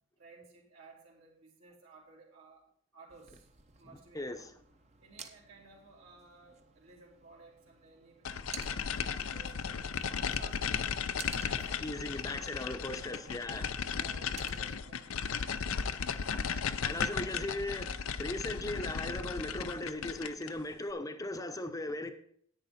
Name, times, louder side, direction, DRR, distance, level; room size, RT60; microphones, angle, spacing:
voice 1, 0.2-2.6 2.9-3.5 3.8-4.4 5.0-11.0 11.4-12.6 12.8-13.6 13.9-15.9 16.6-16.7 17.0-17.2, right 3 dB, 75° right, 3.0 m, -57 dB
sound 1, 3.1-17.9, right 6 dB, 30° right, 0.8 m, -54 dB
voice 2, 4.1-4.5 11.8-13.7 16.8-17.9 18.2-22.1, left 1 dB, 15° left, 0.8 m, -38 dB
sound 2, 8.2-20.6, left 6 dB, 70° left, 0.6 m, -35 dB
10.5 x 9.0 x 4.2 m
head